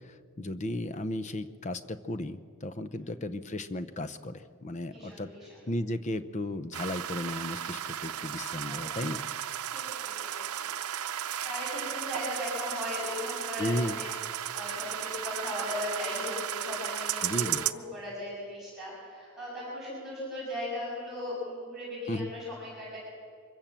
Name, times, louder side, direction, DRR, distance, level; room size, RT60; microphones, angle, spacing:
voice 1, 0.0-5.3 5.7-9.2 13.6-14.0 17.2-17.7 22.1-22.3, left 1 dB, 30° left, 12 dB, 0.7 m, -34 dB
voice 2, 4.9-5.6 8.6-8.8 9.7-10.3 11.4-14.1 14.5-23.0, left 1 dB, ahead, -8 dB, 7.5 m, -38 dB
sound 1, 6.7-17.7, right 10 dB, 85° right, 0.7 m, -35 dB
24.0 x 16.0 x 7.5 m, 2.2 s
head